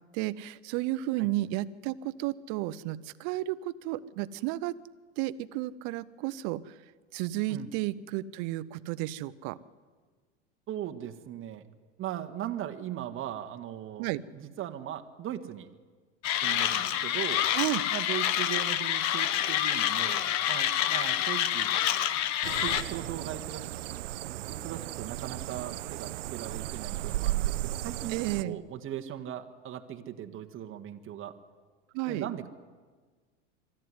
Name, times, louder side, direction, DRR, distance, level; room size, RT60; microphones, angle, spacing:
voice 1, 0.1-4.7 5.2-6.8 7.1-9.6 14.0-14.2 17.5-17.8 28.1-28.6 31.9-32.3, right 16 dB, 55° right, 15 dB, 1.0 m, -32 dB
voice 2, 10.7-11.6 12.0-14.1 14.3-15.7 16.4-17.5 17.9-22.1 22.4-24.2 24.5-31.4 32.0-32.5, right 11 dB, 35° right, 5 dB, 1.5 m, -39 dB
Mechanisms, 16.2-22.8, left 11 dB, 50° left, 1.3 m, -27 dB
sound 1, 22.4-28.4, right 15 dB, 80° right, 0.8 m, -35 dB
23.5 x 13.5 x 9.7 m, 1.5 s
hypercardioid pair, 105°, 36 cm